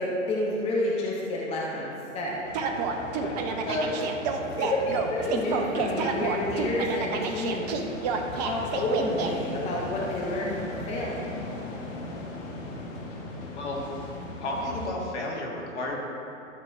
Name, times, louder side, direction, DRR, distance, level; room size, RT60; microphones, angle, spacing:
voice 1, 0.0-2.4 3.7-3.9 4.5-7.7 8.3-11.2, left 1 dB, 15° left, -4 dB, 0.9 m, -29 dB
sound 1, 2.4-14.9, left 2 dB, 40° left, 1.5 m, -39 dB
sound 2, 2.5-9.3, right 5 dB, 30° right, 0.6 m, -29 dB
voice 2, 3.0-4.0 13.5-13.9 14.4-15.9, left 1 dB, 60° left, -2 dB, 2.0 m, -33 dB
13.0 x 7.3 x 2.7 m, 2.8 s
figure-of-eight pair, 115°, 40 cm